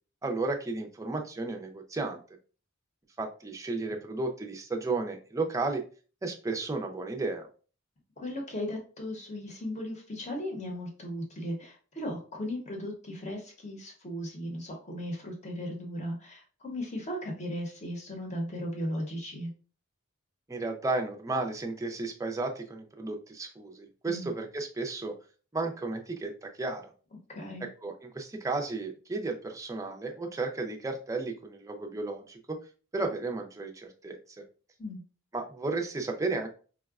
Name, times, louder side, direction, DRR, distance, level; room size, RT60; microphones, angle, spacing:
voice 1, 0.2-2.2 3.2-5.8 6.2-7.5 20.5-25.2 25.5-26.8 27.8-32.6 32.9-34.4 35.3-36.5, right 3 dB, 15° right, 3 dB, 0.4 m, -33 dB
voice 2, 8.2-19.5 24.1-24.3 27.1-27.7 34.8-35.0, equal, 35° left, 0 dB, 0.9 m, -37 dB
4.6 x 2.1 x 2.3 m, 0.39 s
head